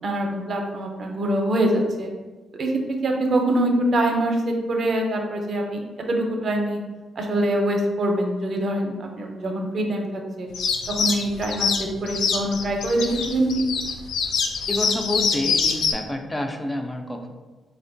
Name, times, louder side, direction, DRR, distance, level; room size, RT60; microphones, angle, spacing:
voice 1, 0.0-2.1 2.6-2.7 3.0-5.8 6.1-6.8 7.2-10.5 11.0-13.5, right 1 dB, 55° right, 1 dB, 0.6 m, -24 dB
sound 1, 10.5-15.9, left 5 dB, 90° left, 0.3 m, -24 dB
voice 2, 14.7-17.3, left 1 dB, 15° left, 4 dB, 0.4 m, -28 dB
4.1 x 2.2 x 2.5 m, 1.2 s
cardioid pair, 100°, 0 cm